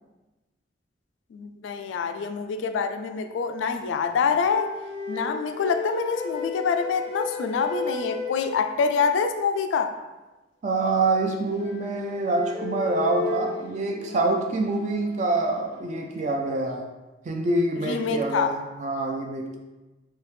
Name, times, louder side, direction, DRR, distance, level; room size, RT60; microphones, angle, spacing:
voice 1, 1.3-4.7 5.1-9.9 17.8-18.5, left 5 dB, 90° left, 8 dB, 0.3 m, -26 dB
sound 1, 4.4-9.2 11.2-16.2, left 3 dB, 55° right, 1.2 m, -35 dB
voice 2, 10.6-16.9 17.2-19.6, right 2 dB, 40° right, 1 dB, 0.3 m, -26 dB
3.3 x 2.8 x 3.1 m, 1.1 s
head